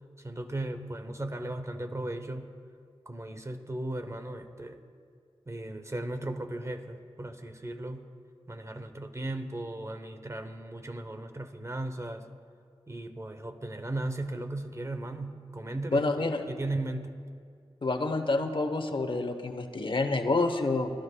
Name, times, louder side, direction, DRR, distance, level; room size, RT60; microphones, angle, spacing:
voice 1, 0.2-2.5 3.1-4.8 5.5-8.0 8.5-12.3 12.9-17.2, right 1 dB, 25° right, 8 dB, 0.8 m, -36 dB
voice 2, 15.9-16.4 17.8-20.9, left 3 dB, 50° left, 6 dB, 0.9 m, -28 dB
22.0 x 13.0 x 2.3 m, 2.2 s
cardioid pair, 40°, 11 cm